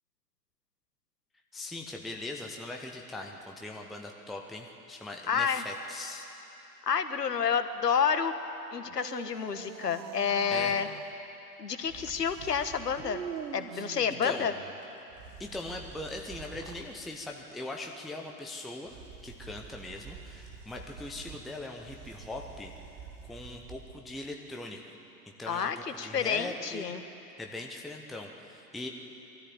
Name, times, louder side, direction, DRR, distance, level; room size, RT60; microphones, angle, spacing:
voice 1, 1.5-6.3 10.5-10.8 13.7-13.9 14.2-14.5 15.4-19.0 19.2-22.7 23.2-24.8 25.4-25.7 26.0-26.9 27.4-28.9, left 2 dB, ahead, 1 dB, 0.5 m, -40 dB
voice 2, 5.3-5.6 6.9-8.3 8.7-10.9 11.6-13.2 13.5-14.5 25.5-27.0, left 7 dB, 75° left, 10 dB, 1.4 m, -29 dB
sound 1, 8.8-11.1 13.0-14.8 16.4-16.9, right 7 dB, 75° right, 1.3 m, -43 dB
sound 2, 11.8-13.3 14.8-14.9 15.1-17.1 18.8-24.2, right 5 dB, 30° right, 1.7 m, -49 dB
22.5 x 13.5 x 8.5 m, 3.0 s
figure-of-eight pair, 110°, 48 cm